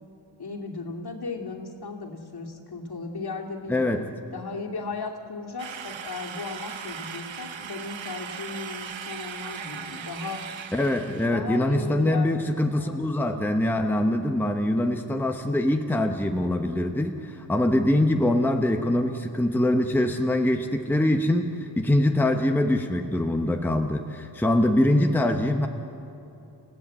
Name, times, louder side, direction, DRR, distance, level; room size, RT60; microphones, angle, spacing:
voice 1, 0.4-3.8 4.3-10.4 11.3-13.0, left 4 dB, 55° left, 0 dB, 2.5 m, -36 dB
voice 2, 3.7-4.1 10.7-25.7, left 1 dB, 5° left, 4 dB, 0.9 m, -23 dB
sound 1, 5.6-11.3, right 7 dB, 80° right, 1.1 m, -38 dB
29.5 x 16.5 x 8.4 m, 2.9 s
wide cardioid pair, 120°, 45 cm